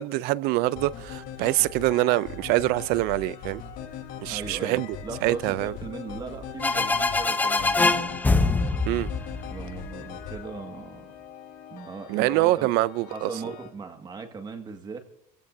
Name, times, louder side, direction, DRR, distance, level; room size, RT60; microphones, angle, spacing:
voice 1, 0.0-3.6 4.2-4.9 5.2-5.7 8.9-9.1 12.1-13.3, right 18 dB, 65° right, 0.5 m, -25 dB
sound 1, 0.6-13.7, left 7 dB, 55° left, 3.5 m, -41 dB
voice 2, 4.3-8.2 9.5-11.2 11.7-12.7 13.1-15.0, right 4 dB, 25° right, 1.9 m, -39 dB
sound 2, 6.6-10.2, left 3 dB, 10° left, 0.7 m, -24 dB
30.0 x 16.0 x 2.7 m
cardioid pair, 135°, 17 cm